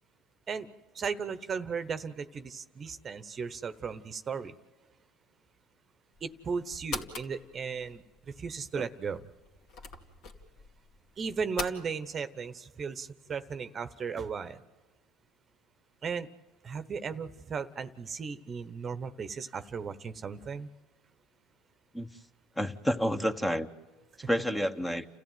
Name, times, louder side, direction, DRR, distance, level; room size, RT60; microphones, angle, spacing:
voice 1, 0.9-4.5 6.2-9.2 11.2-14.6 16.0-16.3 16.6-20.7, right 5 dB, 35° right, 12 dB, 1.0 m, -36 dB
sound 1, 6.1-11.8, left 4 dB, 60° left, 2.4 m, -43 dB
voice 2, 22.6-23.7 24.3-25.1, equal, 10° left, 8 dB, 1.2 m, -29 dB
30.0 x 14.5 x 9.3 m, 1.3 s
supercardioid pair, 95°, 0 cm